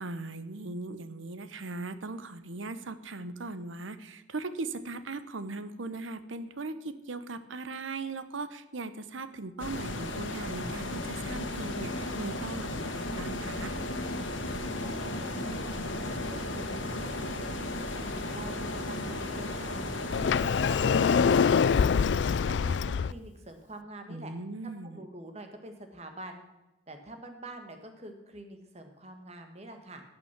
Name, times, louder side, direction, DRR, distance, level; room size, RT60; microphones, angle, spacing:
voice 1, 0.0-13.8 24.1-25.0, right 3 dB, 90° right, 12 dB, 0.9 m, -39 dB
sound 1, 9.6-21.4, left 2 dB, 85° left, 1.5 m, -35 dB
voice 2, 14.8-15.7 16.1-16.7 16.9-17.5 17.9-20.0 20.7-24.3 24.8-26.4 26.9-30.0, right 1 dB, 35° right, 6 dB, 1.5 m, -46 dB
Sliding door, 20.1-23.1, left 6 dB, 65° left, 0.3 m, -24 dB
17.0 x 6.0 x 5.9 m, 1.0 s
head